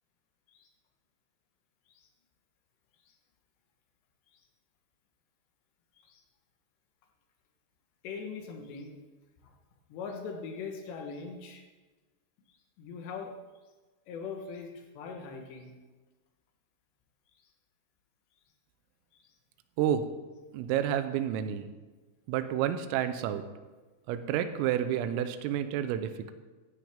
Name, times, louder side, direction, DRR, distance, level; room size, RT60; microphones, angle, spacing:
voice 1, 8.0-9.0 9.4-9.5 9.9-11.7 12.8-13.3 14.1-15.8 19.1-19.3, left 5 dB, 70° left, 2 dB, 3.1 m, -41 dB
voice 2, 19.8-20.1 20.5-21.7 22.3-23.4 24.1-26.3, right 10 dB, 90° right, 10 dB, 3.4 m, -30 dB
16.0 x 12.5 x 3.6 m, 1.3 s
omnidirectional pair, 5.9 m